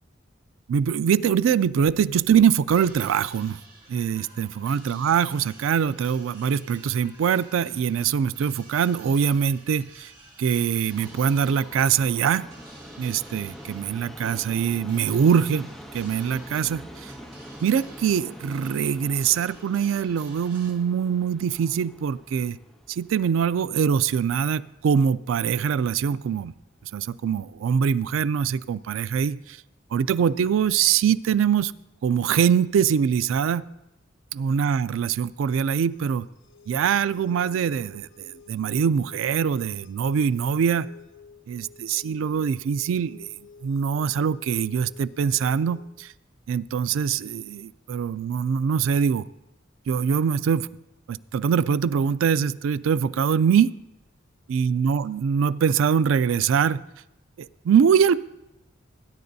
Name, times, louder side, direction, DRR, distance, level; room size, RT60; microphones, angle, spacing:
voice 1, 0.7-3.6 3.9-10.1 10.4-12.5 13.0-17.1 17.6-22.6 22.9-26.5 26.9-29.6 29.9-31.7 32.0-33.6 34.3-36.3 36.7-40.9 41.5-43.3 43.6-46.1 46.5-49.3 49.9-50.7 51.1-53.7 54.5-56.8 57.4-58.3, right 7 dB, 80° right, 18 dB, 0.3 m, -23 dB
sound 1, 2.7-20.7, right 2 dB, 20° right, 2.2 m, -51 dB
Subway metro underground, 10.9-25.0 25.3-25.4 26.3-26.4 26.7-26.8 27.4-27.5, equal, ahead, 1.5 m, -45 dB
sound 2, 35.9-45.9, left 5 dB, 80° left, 1.2 m, -51 dB
20.0 x 10.0 x 2.7 m, 0.92 s
head